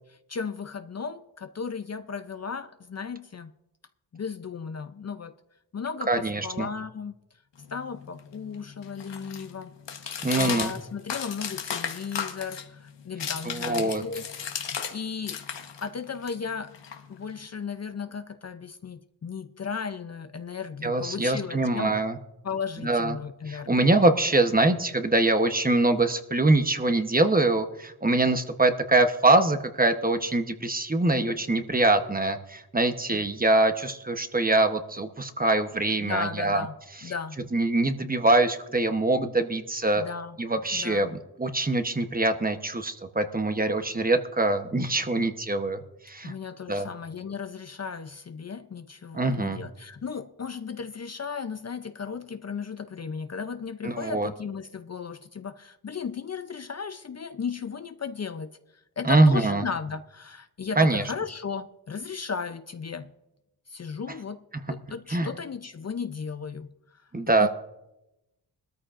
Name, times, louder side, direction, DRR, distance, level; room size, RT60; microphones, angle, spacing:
voice 1, 0.3-3.5 4.1-5.3 5.7-7.1 7.7-9.7 10.0-14.3 14.7-15.4 15.8-16.8 17.1-22.0 22.4-24.0 33.1-33.3 36.0-36.7 37.0-37.4 39.9-40.4 40.7-41.1 46.2-58.5 59.0-63.1 63.7-67.0 67.4-67.5, left 6 dB, 40° left, 0.6 m, -35 dB
voice 2, 6.1-6.7 10.2-10.7 13.4-14.0 20.8-22.2 22.8-23.2 23.5-36.6 37.5-40.0 40.4-46.3 46.7-46.9 49.1-49.6 53.8-54.3 59.0-59.6 60.8-61.0 65.1-65.3 67.1-67.5, right 2 dB, 20° right, 1.0 m, -24 dB
sound 1, 7.6-15.0 15.2-17.4, left 7 dB, 90° left, 1.3 m, -35 dB
21.0 x 13.5 x 2.5 m
cardioid pair, 80°, 42 cm